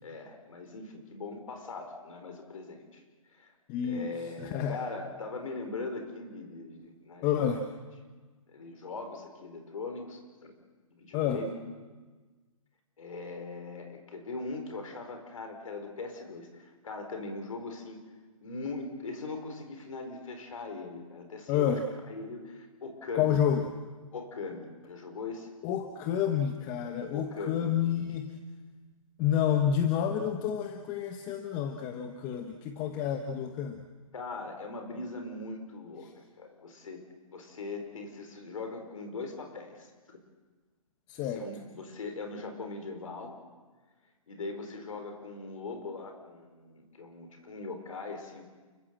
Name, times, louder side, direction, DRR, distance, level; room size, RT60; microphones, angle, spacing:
voice 1, 0.0-3.0 3.3-3.5 3.8-7.5 8.5-10.6 10.9-11.6 13.0-18.0 18.4-21.8 22.1-23.4 24.1-25.5 27.1-27.7 34.1-37.0 37.3-40.2 41.3-43.4 44.3-48.4, left 3 dB, 70° left, 5 dB, 4.6 m, -40 dB
voice 2, 3.7-4.8 7.2-7.7 11.1-11.4 21.5-21.8 23.1-23.7 25.6-28.4 29.2-33.8 36.0-36.1 41.1-41.5, left 9 dB, 20° left, 6 dB, 1.1 m, -29 dB
29.5 x 15.0 x 7.6 m, 1.3 s
hypercardioid pair, 155°, 18 cm